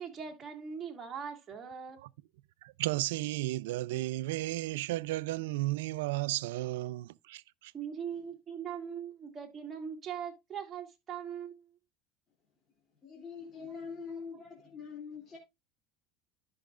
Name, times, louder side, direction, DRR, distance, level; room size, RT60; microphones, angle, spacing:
voice 1, 0.0-2.0 7.7-11.6, right 7 dB, 30° right, 2.2 m, -40 dB
voice 2, 2.6-7.7, right 17 dB, 90° right, 0.3 m, -34 dB
voice 3, 13.0-15.4, left 5 dB, 35° left, 2.8 m, -44 dB
12.5 x 5.8 x 2.4 m
supercardioid pair, 110°, 0 cm